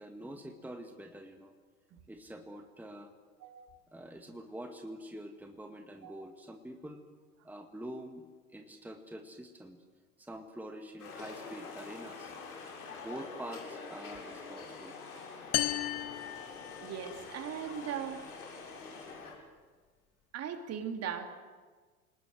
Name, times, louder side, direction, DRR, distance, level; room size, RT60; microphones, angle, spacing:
voice 1, 0.0-1.5 2.1-3.1 3.9-7.0 7.4-9.8 10.2-12.3 12.9-14.9, right 1 dB, 5° right, 4 dB, 2.0 m, -46 dB
sound 1, 11.0-19.3, left 4 dB, 75° left, 7.6 m, -46 dB
sound 2, 15.5-17.3, left 15 dB, 35° left, 1.3 m, -35 dB
voice 2, 16.8-18.2 20.3-21.3, right 8 dB, 35° right, 5 dB, 3.1 m, -39 dB
29.5 x 19.5 x 7.9 m, 1.5 s
figure-of-eight pair, 85°, 45 cm